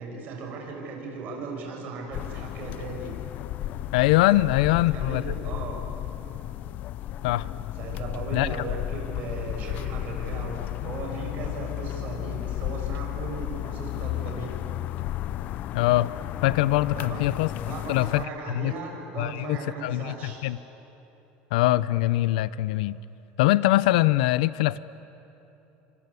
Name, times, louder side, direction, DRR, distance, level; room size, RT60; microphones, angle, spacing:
voice 1, 0.0-3.1 4.9-5.8 7.8-14.6 17.0-17.2 17.7-20.4, right 4 dB, 45° right, 1 dB, 6.4 m, -37 dB
sound 1, 2.1-18.3, left 13 dB, 45° left, 0.5 m, -33 dB
voice 2, 3.9-5.2 7.2-7.5 8.3-8.5 15.7-16.1 16.4-17.5 17.9-18.7 19.2-20.6 21.5-23.0 23.4-24.8, left 16 dB, 90° left, 17 dB, 0.6 m, -23 dB
27.0 x 26.5 x 8.3 m, 3.0 s
cardioid pair, 155°, 4 cm